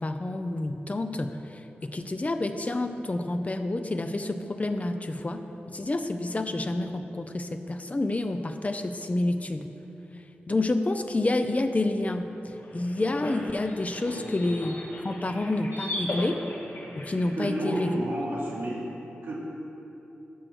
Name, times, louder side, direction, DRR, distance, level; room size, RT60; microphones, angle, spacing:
voice 1, 0.0-1.4 1.8-5.4 5.7-9.7 10.5-12.2 12.7-14.8 15.0-16.4 17.0-17.9, left 2 dB, 35° left, 7 dB, 0.6 m, -28 dB
sound 1, 12.4-17.9, left 1 dB, 75° left, 2.1 m, -38 dB
voice 2, 17.3-18.8 19.2-19.3, right 1 dB, 80° right, -6 dB, 2.1 m, -30 dB
12.5 x 6.3 x 4.6 m, 3.0 s
cardioid pair, 40°, 4 cm